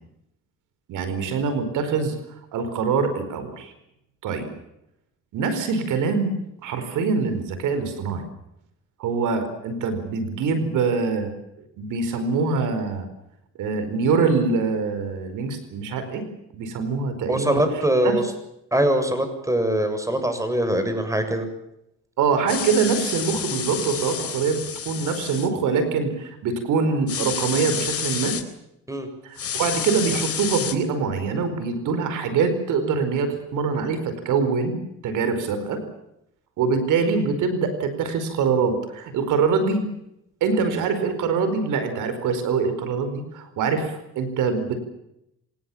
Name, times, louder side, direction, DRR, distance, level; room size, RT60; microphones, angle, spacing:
voice 1, 0.9-3.7 4.2-4.5 5.3-6.3 6.6-8.2 9.0-11.3 11.6-13.1 13.6-16.3 16.5-18.1 22.2-28.4 29.2-34.8 35.0-35.8 36.6-39.9 40.4-44.8, right 5 dB, 85° right, 10 dB, 4.8 m, -24 dB
voice 2, 17.3-18.2 18.7-21.5 28.9-29.1, right 1 dB, 10° right, 8 dB, 7.1 m, -22 dB
sound 1, 22.5-25.5 27.1-28.4 29.4-30.7, left 7 dB, 50° left, 4.0 m, -29 dB
27.0 x 19.0 x 7.2 m, 0.81 s
cardioid pair, 90°, 30 cm